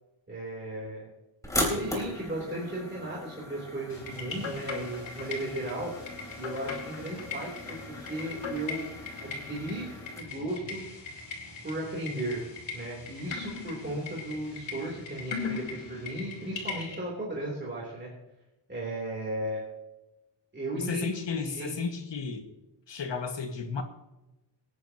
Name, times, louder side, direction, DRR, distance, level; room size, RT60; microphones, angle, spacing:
voice 1, 0.3-1.1 1.5-6.1 6.4-8.9 9.2-9.9 10.2-10.8 11.6-12.4 12.7-18.1 18.7-19.6 20.5-21.7, right 1 dB, 25° right, -5 dB, 3.4 m, -35 dB
sound 1, 1.4-10.2, left 1 dB, 5° left, 3.4 m, -38 dB
sound 2, 3.9-17.0, left 1 dB, 50° left, 5.1 m, -50 dB
sound 3, 4.1-17.0, left 5 dB, 85° left, 3.6 m, -40 dB
voice 2, 20.8-22.5 22.9-23.8, left 5 dB, 70° left, 5 dB, 1.8 m, -33 dB
25.5 x 9.9 x 2.9 m, 0.98 s
wide cardioid pair, 160°, 45 cm